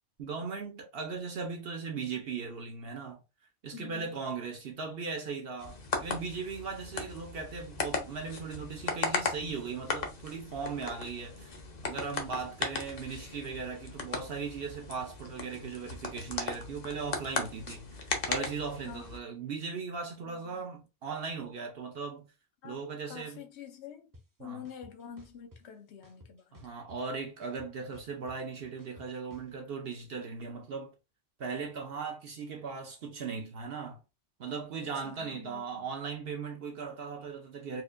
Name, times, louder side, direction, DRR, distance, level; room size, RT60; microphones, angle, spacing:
voice 1, 0.2-3.2 3.6-11.5 11.8-17.9 18.3-22.3 22.6-23.4 24.4-24.6 26.5-30.9 31.4-34.0 34.4-37.8, right 5 dB, 60° right, 0.8 m, -38 dB
voice 2, 3.7-4.1 18.8-19.1 20.2-20.7 22.6-24.1 24.4-26.7 34.8-36.0, left 8 dB, 70° left, 1.0 m, -47 dB
sound 1, 5.6-19.2, left 4 dB, 45° left, 0.7 m, -37 dB
sound 2, 24.1-24.2 24.6-25.6 26.0-27.1 27.4-29.5, left 1 dB, 25° right, 0.5 m, -55 dB
4.3 x 2.5 x 2.5 m
omnidirectional pair, 1.2 m